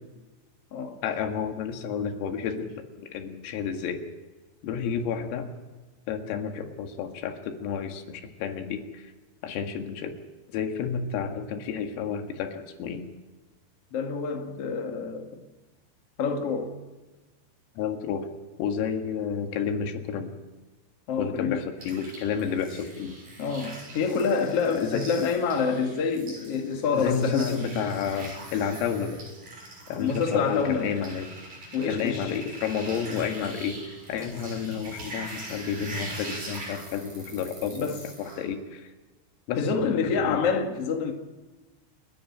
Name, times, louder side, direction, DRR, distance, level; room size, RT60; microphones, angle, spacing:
voice 1, 1.0-4.0 4.6-5.5 6.1-9.1 9.4-10.1 10.5-13.1 17.8-18.3 18.6-20.3 21.2-23.2 24.8-25.1 26.9-29.2 29.9-31.3 31.9-37.9 38.2-38.9 39.5-40.4, left 7 dB, 80° left, 4.5 m, -31 dB
voice 2, 13.9-15.4 16.2-16.8 21.1-21.6 23.4-27.8 29.9-30.9 31.7-32.4 37.7-38.0 39.6-41.1, left 5 dB, 55° left, 1.7 m, -27 dB
sound 1, 21.8-38.4, right 1 dB, 40° right, 8.5 m, -42 dB
29.5 x 11.0 x 9.9 m
omnidirectional pair, 6.0 m